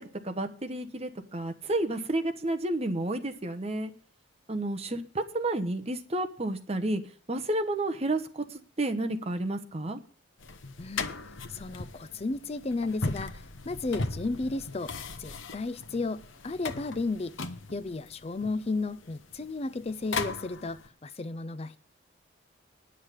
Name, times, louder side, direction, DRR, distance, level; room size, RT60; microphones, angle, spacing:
voice 1, 0.0-3.9 4.5-7.0 7.3-10.0, right 2 dB, 30° right, 6 dB, 1.0 m, -31 dB
sound 1, 10.4-20.9, left 3 dB, 70° left, 1.0 m, -38 dB
voice 2, 10.8-11.1 11.5-14.9 15.2-17.3 17.7-21.8, left 3 dB, 30° left, 13 dB, 0.4 m, -33 dB
9.9 x 6.4 x 8.8 m, 0.43 s
head